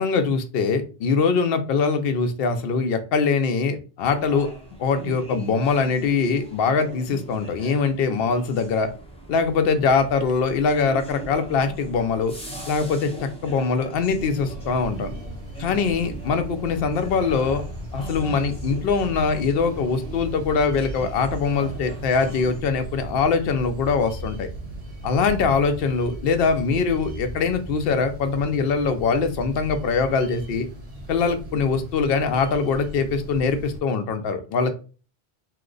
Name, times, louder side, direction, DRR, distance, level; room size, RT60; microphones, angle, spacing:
voice 1, 0.0-4.5 4.8-8.9 9.3-12.3 12.7-15.1 15.6-17.6 17.9-24.5 25.0-30.7 31.1-34.7, left 5 dB, 70° left, 7 dB, 0.7 m, -22 dB
sound 1, 4.1-22.6, right 2 dB, 5° left, 0.6 m, -40 dB
sound 2, 14.1-33.8, right 1 dB, 40° right, 1.0 m, -37 dB
2.9 x 2.1 x 3.7 m, 0.35 s
omnidirectional pair, 1.1 m